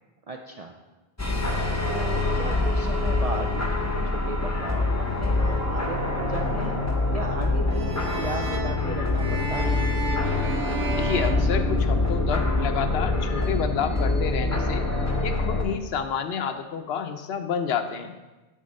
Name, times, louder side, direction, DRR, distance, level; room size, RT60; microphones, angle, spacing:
voice 1, 0.3-0.7 1.9-6.8 7.1-9.8, right 3 dB, 60° right, 2 dB, 0.4 m, -36 dB
sound 1, 1.2-15.6, left 2 dB, 20° left, 0.6 m, -25 dB
sound 2, 7.7-12.3, right 2 dB, 85° right, 1.2 m, -34 dB
voice 2, 11.0-14.8 15.2-18.1, left 7 dB, 70° left, 9 dB, 0.8 m, -29 dB
7.4 x 4.3 x 5.2 m, 1.2 s
omnidirectional pair, 1.2 m